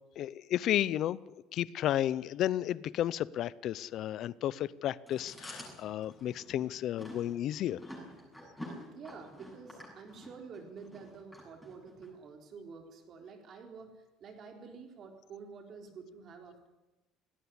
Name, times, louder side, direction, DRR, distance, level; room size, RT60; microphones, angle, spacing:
voice 1, 0.2-1.2 1.5-7.8, left 12 dB, 45° left, 20 dB, 0.6 m, -32 dB
Chewing mastication, 5.1-12.1, equal, 5° left, 7.5 m, -48 dB
voice 2, 8.9-16.7, right 5 dB, 35° right, 3 dB, 4.0 m, -49 dB
19.0 x 17.0 x 9.9 m, 1.0 s
cardioid pair, 170°, 0 cm